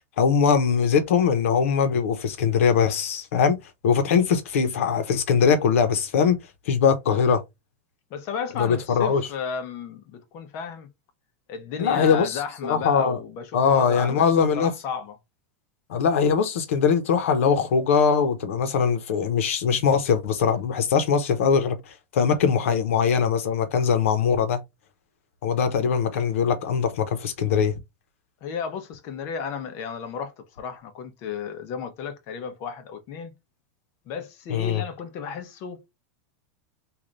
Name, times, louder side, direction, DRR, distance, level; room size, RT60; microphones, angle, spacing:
voice 1, 0.2-3.6 3.8-6.4 6.7-7.4 8.5-9.2 11.8-13.2 13.5-14.7 15.9-24.6 25.4-27.8 34.5-34.8, left 6 dB, 80° left, 0.9 m, -21 dB
voice 2, 8.1-10.9 11.5-14.3 14.5-15.2 28.4-33.3 34.1-35.8, left 6 dB, 40° left, 0.8 m, -33 dB
3.2 x 2.5 x 3.9 m
supercardioid pair, 160°, 7 cm